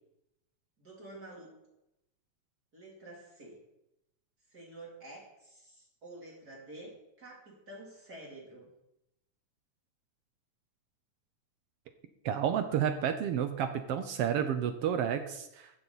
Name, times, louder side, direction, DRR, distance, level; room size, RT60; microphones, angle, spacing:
voice 1, 0.8-1.5 2.7-3.5 4.5-8.7, right 1 dB, 30° right, -4 dB, 3.4 m, -49 dB
voice 2, 12.2-15.7, right 9 dB, 75° right, 8 dB, 1.4 m, -31 dB
15.0 x 7.2 x 4.0 m, 0.87 s
omnidirectional pair, 3.3 m